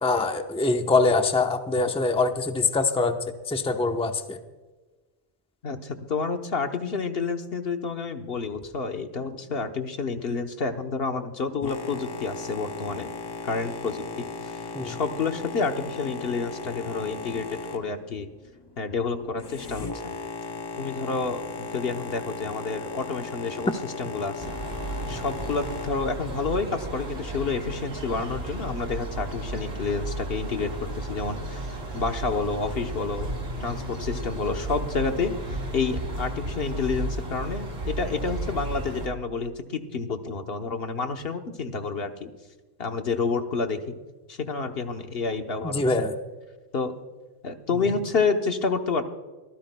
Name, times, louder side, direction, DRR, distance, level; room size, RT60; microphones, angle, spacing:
voice 1, 0.0-3.2 3.5-4.4 14.7-15.0 45.6-46.2, left 3 dB, 5° left, 5 dB, 0.8 m, -24 dB
voice 2, 5.6-13.1 13.4-14.3 14.8-18.3 18.8-19.9 20.8-23.7 24.0-24.6 25.1-30.7 30.9-33.3 33.6-42.3 42.8-44.0 44.3-45.8 46.7-46.9 47.4-49.0, left 4 dB, 60° left, 6 dB, 1.2 m, -29 dB
Boat Water vehicle, 11.6-25.9, left 3 dB, 30° left, 0.4 m, -37 dB
sound 1, 24.4-39.1, right 2 dB, 60° right, 2.2 m, -34 dB
25.0 x 15.0 x 2.2 m, 1.2 s
omnidirectional pair, 1.1 m